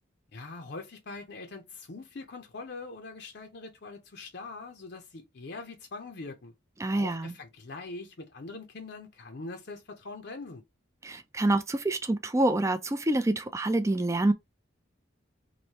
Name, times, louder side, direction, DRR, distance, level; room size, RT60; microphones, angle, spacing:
voice 1, 0.3-6.5 6.9-10.6, left 3 dB, 55° left, 0.7 m, -42 dB
voice 2, 6.8-7.3 11.0-14.3, right 2 dB, 15° right, 0.4 m, -27 dB
3.1 x 2.7 x 4.1 m
head